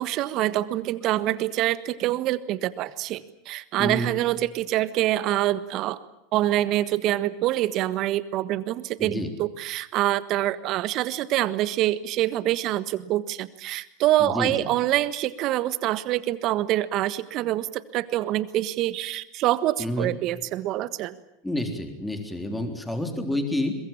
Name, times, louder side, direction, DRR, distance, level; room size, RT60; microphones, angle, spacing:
voice 1, 0.0-6.0 6.3-17.7 17.9-21.1, right 14 dB, 50° right, 15 dB, 1.4 m, -25 dB
voice 2, 3.8-4.2 9.0-9.3 14.2-14.7 19.8-20.1 21.4-23.8, left 1 dB, 5° left, 5 dB, 3.7 m, -29 dB
22.5 x 22.0 x 8.7 m, 0.84 s
hypercardioid pair, 95°, 0 cm